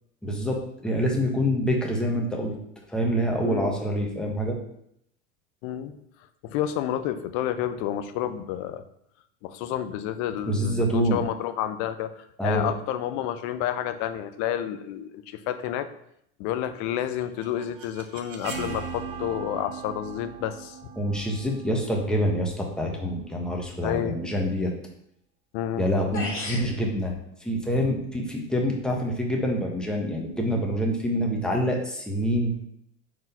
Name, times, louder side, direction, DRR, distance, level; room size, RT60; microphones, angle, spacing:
voice 1, 0.2-2.5 2.9-4.6 10.5-11.2 12.4-12.7 21.0-24.7 25.8-27.1 27.4-32.5, equal, ahead, -1 dB, 1.4 m, -26 dB
voice 2, 3.4-3.7 5.6-6.0 6.4-8.8 9.4-15.9 16.4-20.8 23.8-24.2 25.5-25.9 27.7-27.9, left 11 dB, 55° left, 11 dB, 0.7 m, -30 dB
sound 1, 17.0-22.9, right 5 dB, 55° right, 1.3 m, -39 dB
sound 2, 25.8-25.9 26.1-26.7, left 2 dB, 35° left, 2.1 m, -32 dB
4.8 x 3.8 x 5.4 m, 0.74 s
hypercardioid pair, 100°, 37 cm